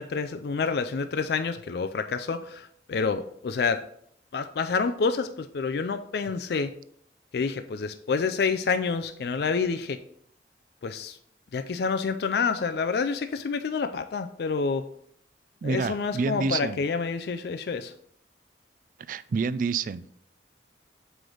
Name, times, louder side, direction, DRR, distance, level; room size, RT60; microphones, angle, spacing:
voice 1, 0.0-3.8 4.3-6.7 7.3-10.0 10.8-11.2 11.5-14.8 15.6-17.9, left 5 dB, 60° left, 8 dB, 0.4 m, -28 dB
voice 2, 15.6-16.8 19.1-20.1, right 4 dB, 45° right, 16 dB, 0.3 m, -28 dB
7.5 x 4.9 x 3.9 m, 0.67 s
head